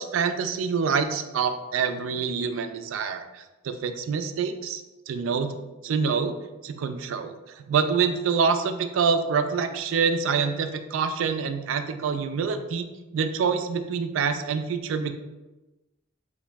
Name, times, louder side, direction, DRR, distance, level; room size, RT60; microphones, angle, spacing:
voice 1, 0.0-5.6 5.8-6.4 6.6-12.9 13.1-15.1, right 6 dB, 70° right, 8 dB, 0.3 m, -26 dB
3.0 x 2.6 x 3.3 m, 1.1 s
head